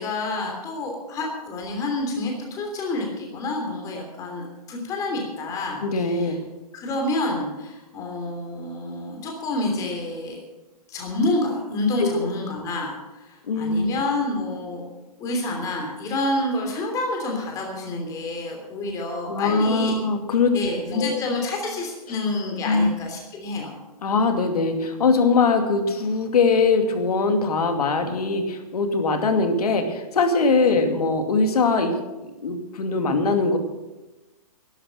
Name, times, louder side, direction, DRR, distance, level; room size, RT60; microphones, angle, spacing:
voice 1, 0.0-6.4 6.7-10.4 10.9-14.8 15.2-20.0 20.5-23.8 30.6-30.7, left 2 dB, 15° left, 1 dB, 3.1 m, -28 dB
voice 2, 5.8-6.4 12.0-12.3 13.5-13.9 19.3-20.6 20.9-21.2 22.7-22.9 24.0-32.0 32.4-33.6, left 4 dB, 80° left, 6 dB, 2.5 m, -21 dB
12.0 x 11.5 x 7.6 m, 1.1 s
hypercardioid pair, 160°, 19 cm